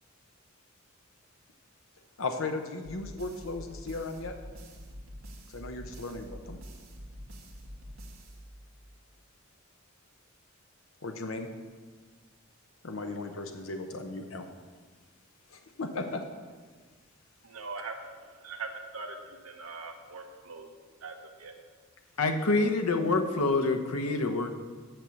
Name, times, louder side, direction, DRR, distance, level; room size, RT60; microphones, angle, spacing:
voice 1, 2.2-4.3 5.5-6.6 11.0-11.5 12.8-14.4 15.5-16.2, left 3 dB, 65° left, 0.8 m, -36 dB
sound 1, 2.8-9.0, equal, 65° right, 1.7 m, -46 dB
voice 2, 17.4-17.9 18.4-19.2 19.4-20.7 21.0-21.5, right 4 dB, 85° right, 1.2 m, -41 dB
voice 3, 22.2-24.5, left 3 dB, 90° left, 1.0 m, -26 dB
9.1 x 6.5 x 7.0 m
head